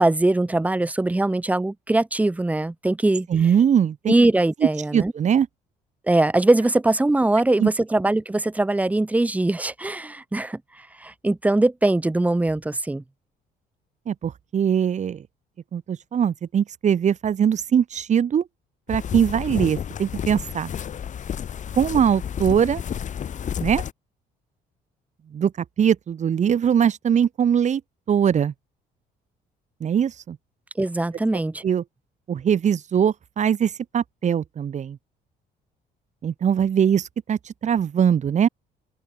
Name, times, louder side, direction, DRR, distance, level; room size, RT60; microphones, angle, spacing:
voice 1, 0.0-3.3 4.1-5.1 6.1-13.0 30.8-31.6, right 2 dB, 10° right, 0.8 m, -21 dB
voice 2, 3.3-4.1 4.9-5.5 7.6-7.7 14.1-15.2 15.7-18.4 18.9-20.7 21.8-22.8 23.6-23.8 25.3-25.5 25.8-27.8 28.1-28.5 29.8-30.4 31.6-31.8 32.3-35.0 36.2-38.5, right 8 dB, 45° right, 2.6 m, -21 dB
sound 1, 18.9-23.9, left 8 dB, 45° left, 4.3 m, -31 dB
open air
cardioid pair, 110°, 17 cm